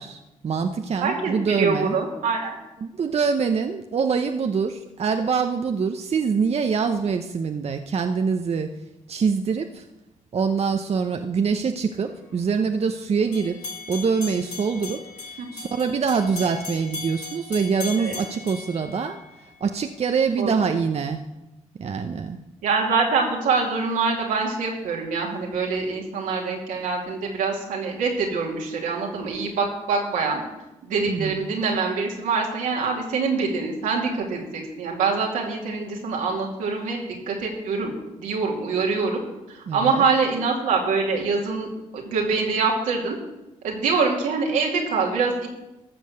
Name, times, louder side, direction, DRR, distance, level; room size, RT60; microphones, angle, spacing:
voice 1, 0.0-2.0 2.8-8.7 9.1-9.8 10.3-21.2 21.8-22.4 31.1-31.4 39.7-40.1, right 5 dB, 50° right, 6 dB, 0.8 m, -25 dB
voice 2, 1.0-2.6 15.4-15.5 18.0-18.2 20.4-20.7 22.6-30.4 30.8-39.2 39.5-41.7 41.9-43.2 43.6-45.5, right 4 dB, 85° right, -1 dB, 2.4 m, -25 dB
sound 1, 13.3-19.6, left 4 dB, 65° left, 3.7 m, -37 dB
13.5 x 6.4 x 6.4 m, 0.97 s
supercardioid pair, 55°, 13 cm